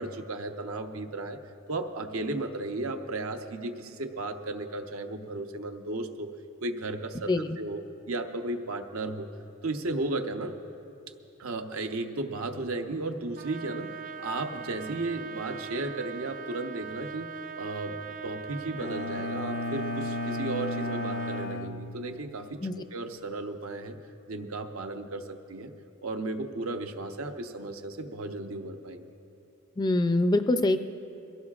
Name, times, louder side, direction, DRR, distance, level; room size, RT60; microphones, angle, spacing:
voice 1, 0.0-1.4 1.7-6.3 6.6-7.8 8.1-9.4 9.6-10.5 11.4-22.6 22.9-24.0 24.3-25.7 26.0-29.0, right 2 dB, 80° right, 5 dB, 0.8 m, -34 dB
Trumpet, 13.4-21.5, right 6 dB, 40° right, 0.4 m, -41 dB
Bowed string instrument, 18.8-22.6, left 2 dB, 65° left, 0.6 m, -34 dB
voice 2, 29.8-30.8, left 2 dB, 20° left, 9 dB, 0.4 m, -24 dB
22.0 x 16.5 x 2.4 m, 2.7 s
head